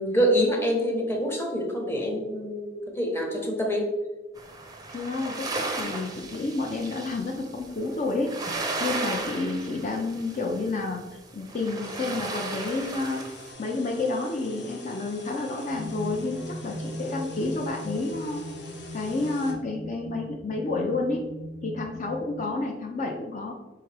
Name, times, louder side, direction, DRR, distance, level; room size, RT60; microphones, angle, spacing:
voice 1, 0.0-3.9, equal, 15° left, 1 dB, 0.8 m, -26 dB
sound 1, 4.4-13.5, right 3 dB, 20° right, 0.5 m, -35 dB
voice 2, 4.9-8.3 8.8-11.0 11.3-13.2 13.6-18.4 18.9-21.3 21.6-23.5, left 3 dB, 40° left, 0 dB, 0.4 m, -30 dB
sound 2, 11.8-19.5, left 1 dB, 65° left, 0.8 m, -43 dB
sound 3, 15.7-22.5, equal, 75° right, 0.4 m, -39 dB
4.7 x 3.5 x 3.3 m, 1.2 s
head